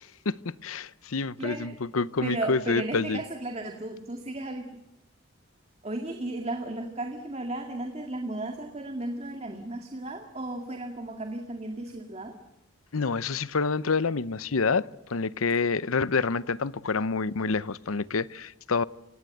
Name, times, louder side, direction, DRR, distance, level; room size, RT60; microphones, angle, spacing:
voice 1, 0.2-3.2 12.9-18.8, left 4 dB, 85° left, 0.8 m, -28 dB
voice 2, 1.4-1.8 2.2-4.8 5.8-12.4, right 2 dB, 30° right, 2.1 m, -35 dB
29.0 x 18.0 x 8.0 m
head